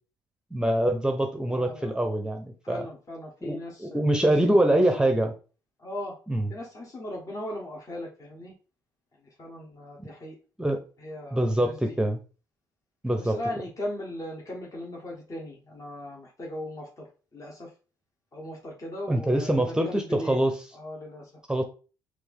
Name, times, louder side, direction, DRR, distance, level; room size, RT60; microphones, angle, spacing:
voice 1, 0.5-2.8 3.4-5.3 6.3-6.5 10.0-10.1 10.6-10.8 11.3-12.2 13.0-13.3 19.1-20.6 21.5-21.6, right 1 dB, 10° right, 5 dB, 0.8 m, -24 dB
voice 2, 1.5-2.0 2.6-4.8 5.8-6.1 6.5-8.5 9.4-10.4 11.0-12.0 13.2-17.7 18.3-20.4 20.7-21.3, left 1 dB, 35° left, -1 dB, 1.2 m, -38 dB
4.4 x 2.5 x 3.5 m, 0.35 s
hypercardioid pair, 50°, 10 cm